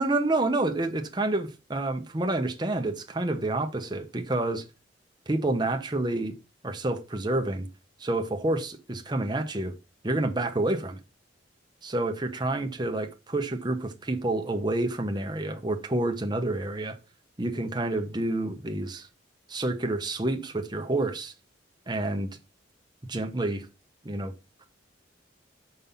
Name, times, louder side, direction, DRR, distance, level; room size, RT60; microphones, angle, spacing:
voice 1, 0.0-4.6 5.3-6.3 6.6-7.7 8.0-9.7 10.0-11.0 11.8-17.0 17.4-19.1 19.5-21.3 21.9-22.3 23.1-23.7 24.0-24.3, right 2 dB, 20° right, 0.9 m, -28 dB
5.5 x 5.4 x 5.6 m
head